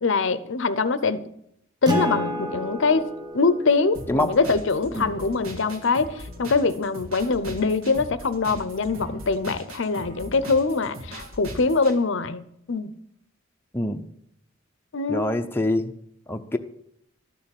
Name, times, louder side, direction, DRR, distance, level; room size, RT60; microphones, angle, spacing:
voice 1, 0.0-1.3 1.8-3.0 3.3-12.9 14.9-15.2, left 4 dB, 60° left, 0.6 m, -23 dB
Acoustic guitar, 1.8-6.8, equal, 20° right, 1.4 m, -32 dB
sound 1, 3.9-11.9, right 1 dB, 85° right, 1.8 m, -40 dB
voice 2, 15.1-15.9 16.3-16.6, left 1 dB, 10° left, 0.6 m, -25 dB
12.5 x 6.6 x 8.8 m
head